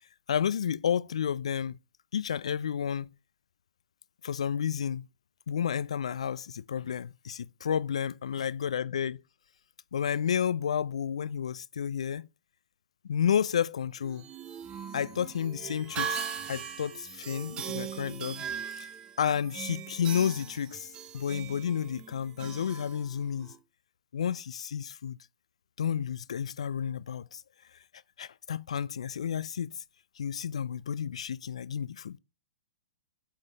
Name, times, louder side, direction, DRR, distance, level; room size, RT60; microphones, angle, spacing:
voice 1, 0.3-1.8 2.1-3.1 4.2-5.1 5.5-9.2 9.9-12.3 13.0-14.2 14.9-18.9 19.2-23.5 24.1-25.2 25.8-27.4 28.2-29.8 30.2-32.2, left 8 dB, 75° left, 0.3 m, -31 dB
sound 1, 14.0-23.6, right 7 dB, 25° right, 0.7 m, -40 dB
8.2 x 3.7 x 5.0 m
hypercardioid pair, 115°, 3 cm